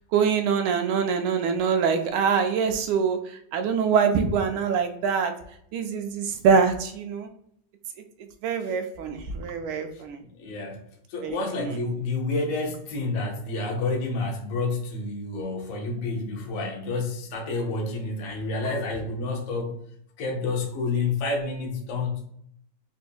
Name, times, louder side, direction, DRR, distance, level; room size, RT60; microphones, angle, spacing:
voice 1, 0.1-5.3 5.7-7.3 8.4-10.2 11.2-11.7, right 6 dB, 80° right, 6 dB, 1.4 m, -24 dB
voice 2, 9.9-10.8 11.1-19.7 20.2-22.2, left 3 dB, 80° left, 2 dB, 0.7 m, -29 dB
4.1 x 2.7 x 2.2 m, 0.70 s
omnidirectional pair, 2.3 m